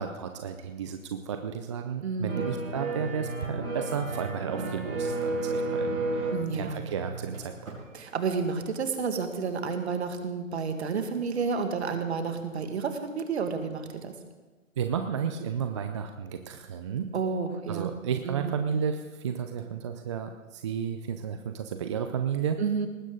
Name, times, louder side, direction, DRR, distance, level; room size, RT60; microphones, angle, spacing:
voice 1, 0.0-6.1 6.5-7.7 14.8-17.2 17.7-22.6, right 7 dB, 25° right, 7 dB, 0.6 m, -32 dB
voice 2, 2.0-2.5 6.3-6.9 7.9-14.1 17.1-18.6 22.6-22.9, right 5 dB, 50° right, 6 dB, 2.2 m, -31 dB
sound 1, 2.3-7.8 8.1-8.2, right 2 dB, 75° right, 5.5 m, -32 dB
19.5 x 15.5 x 3.9 m, 1.3 s
figure-of-eight pair, 135°, 40 cm